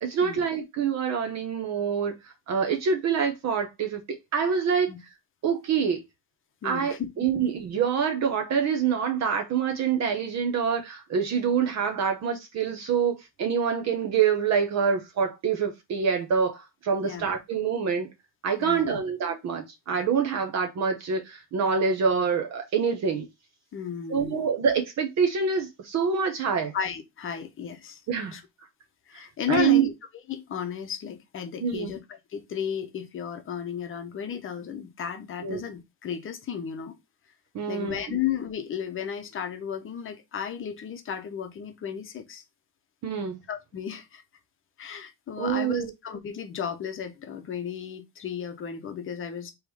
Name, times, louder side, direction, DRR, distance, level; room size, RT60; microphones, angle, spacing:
voice 1, 0.0-4.0 4.3-4.9 5.4-6.0 6.6-18.1 18.4-23.3 24.1-26.7 28.1-28.4 29.5-29.9 31.6-31.9 35.4-35.6 37.5-38.2 43.0-43.4 45.4-45.9, right 6 dB, 45° right, 0.9 m, -26 dB
voice 2, 6.6-7.1 17.0-17.3 18.6-19.0 23.7-24.5 26.7-28.0 28.3-28.4 29.1-29.9 30.3-32.0 32.3-37.0 37.7-42.4 43.5-44.2 44.8-49.5, left 8 dB, 35° left, 0.8 m, -34 dB
3.7 x 3.1 x 4.7 m
cardioid pair, 160°, 37 cm